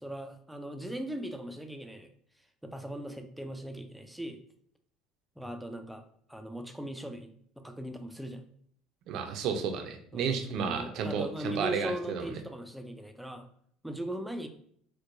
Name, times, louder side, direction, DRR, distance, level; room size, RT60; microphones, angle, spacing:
voice 1, 0.0-2.1 2.6-4.4 5.4-6.0 6.3-8.4 10.1-13.5 13.8-14.5, right 1 dB, ahead, 6 dB, 0.3 m, -39 dB
voice 2, 9.1-12.3, right 6 dB, 55° right, 5 dB, 0.5 m, -32 dB
4.5 x 2.2 x 2.5 m, 0.65 s
cardioid pair, 135°, 0 cm